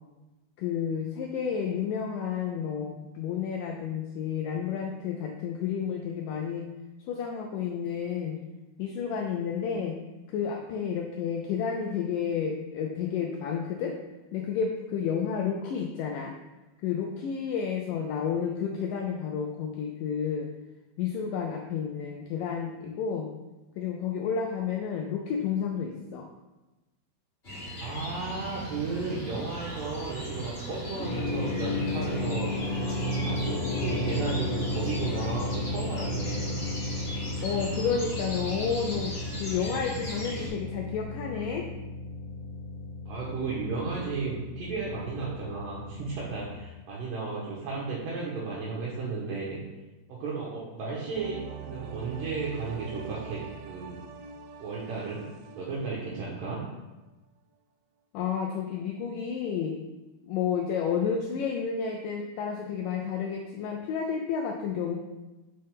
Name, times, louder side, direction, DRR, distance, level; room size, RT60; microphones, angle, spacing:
voice 1, 0.6-6.6 7.1-8.4 8.8-9.9 10.3-13.9 14.3-16.3 16.8-20.5 21.0-23.3 23.8-26.3 37.4-39.1 39.4-41.7 58.1-59.8 60.3-65.0, left 7 dB, 85° left, 2 dB, 1.9 m, -31 dB
sound 1, 27.4-40.5, equal, 30° left, 1.1 m, -38 dB
voice 2, 27.8-32.5 33.2-36.6 43.1-49.6 50.1-51.4 51.7-54.0 54.6-55.2 55.5-56.6, right 4 dB, 70° right, -5 dB, 2.4 m, -34 dB
sound 2, 31.0-46.6, left 1 dB, 60° left, 1.5 m, -34 dB
sound 3, 51.1-56.8 57.1-57.2, right 6 dB, 90° right, 1.8 m, -44 dB
6.4 x 5.6 x 3.5 m, 1.1 s
omnidirectional pair, 4.5 m